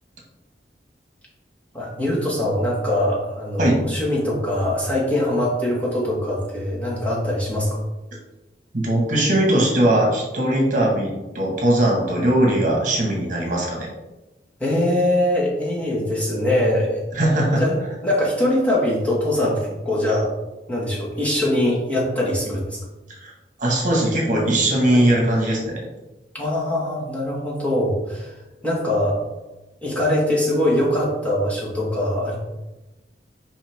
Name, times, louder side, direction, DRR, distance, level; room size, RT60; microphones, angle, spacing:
voice 1, 1.7-7.8 14.6-17.0 17.5-20.3 20.7-22.8 24.9-25.0 26.3-28.3 28.6-29.2 29.8-32.4, left 1 dB, 10° left, -6 dB, 2.0 m, -22 dB
voice 2, 8.7-13.9 17.1-17.6 23.2-23.3 23.6-25.7, right 1 dB, 45° right, -2 dB, 1.9 m, -20 dB
7.1 x 5.3 x 3.7 m, 1.0 s
head